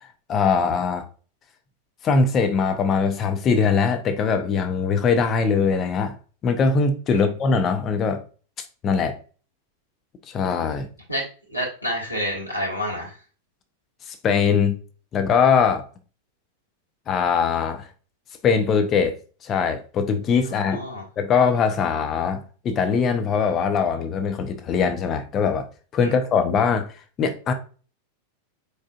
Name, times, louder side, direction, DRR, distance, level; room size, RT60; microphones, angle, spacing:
voice 1, 0.3-1.0 2.0-6.2 6.4-8.2 8.8-9.2 10.3-10.9 14.1-14.8 15.1-15.8 17.1-17.9 18.4-19.1 19.4-20.8 21.2-25.6 25.9-26.9 27.2-27.5, left 5 dB, 30° left, 0.7 m, -21 dB
voice 2, 11.5-13.1 20.6-21.0 26.0-26.1, equal, 85° left, 1.7 m, -28 dB
4.9 x 4.1 x 2.4 m
figure-of-eight pair, 90°, 0 cm